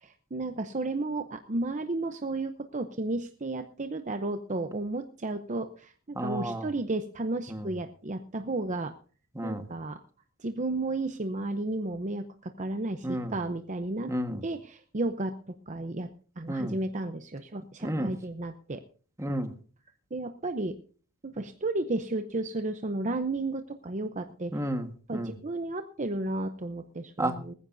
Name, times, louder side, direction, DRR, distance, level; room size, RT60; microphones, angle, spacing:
voice 1, 0.0-8.9 9.4-10.0 10.4-12.2 12.6-14.1 14.4-15.3 15.7-16.1 16.4-18.8 20.1-20.7 21.4-24.5 25.1-27.5, right 2 dB, 35° right, 7 dB, 0.7 m, -33 dB
voice 2, 6.1-6.7 7.5-7.7 9.3-9.7 13.0-13.4 14.1-14.4 16.5-16.8 17.8-18.1 19.2-19.5 24.5-25.3 27.2-27.4, right 1 dB, 15° right, 6 dB, 1.4 m, -32 dB
19.5 x 15.0 x 2.7 m, 0.42 s
head